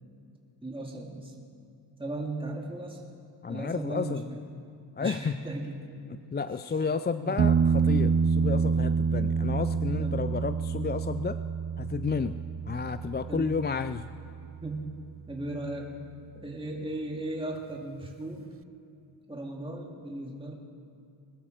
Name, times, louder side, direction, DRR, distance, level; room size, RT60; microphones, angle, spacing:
voice 1, 0.6-1.3 2.0-3.0 3.5-4.4 5.0-5.8 6.8-6.9 7.2-7.4 10.0-10.2 13.3-13.5 14.6-15.0 15.3-15.9 16.4-18.5 19.3-20.5, right 2 dB, 10° right, -1 dB, 2.0 m, -36 dB
voice 2, 3.4-4.3 5.0-5.3 6.1-11.4 11.8-12.4 12.7-14.1, left 5 dB, 25° left, 12 dB, 0.4 m, -31 dB
sound 1, 7.4-15.0 18.0-18.1, right 6 dB, 30° right, 0.5 m, -28 dB
21.0 x 12.5 x 5.1 m, 2.6 s
cardioid pair, 75°, 45 cm